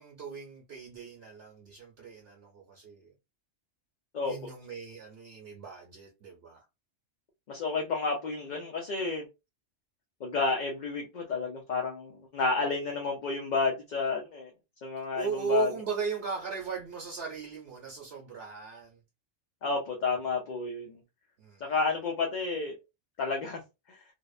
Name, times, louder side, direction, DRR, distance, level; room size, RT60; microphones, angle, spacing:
voice 1, 0.0-3.1 4.2-6.6 15.0-19.0 21.4-21.8, right 6 dB, 65° right, 0.9 m, -37 dB
voice 2, 7.5-9.2 10.2-14.5 14.8-15.7 19.6-21.0 21.6-22.7 23.2-23.6, left 4 dB, 50° left, 0.6 m, -31 dB
2.6 x 2.0 x 2.3 m
omnidirectional pair, 1.2 m